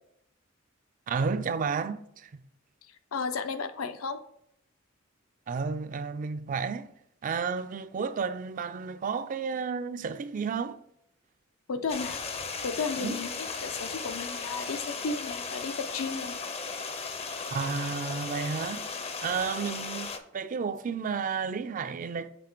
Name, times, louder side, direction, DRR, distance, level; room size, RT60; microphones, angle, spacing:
voice 1, 1.1-2.4 5.5-6.9 7.2-10.8 13.0-13.2 17.5-18.8 19.2-22.3, right 5 dB, 40° right, 0.3 m, -32 dB
voice 2, 3.1-4.2 11.7-12.2 12.6-16.4, left 4 dB, 85° left, 0.6 m, -34 dB
Stream, 11.9-20.2, left 4 dB, 30° left, 0.5 m, -36 dB
6.9 x 3.2 x 4.5 m
head